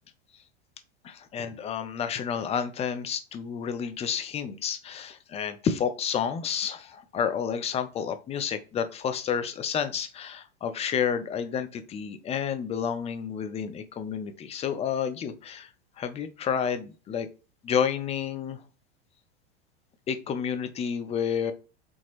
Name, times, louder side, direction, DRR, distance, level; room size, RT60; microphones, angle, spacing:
voice 1, 1.0-15.7 16.0-17.3 17.6-18.6 20.1-21.5, left 7 dB, 20° left, 10 dB, 0.5 m, -30 dB
4.4 x 2.9 x 2.9 m, 0.33 s
hypercardioid pair, 100°, 32 cm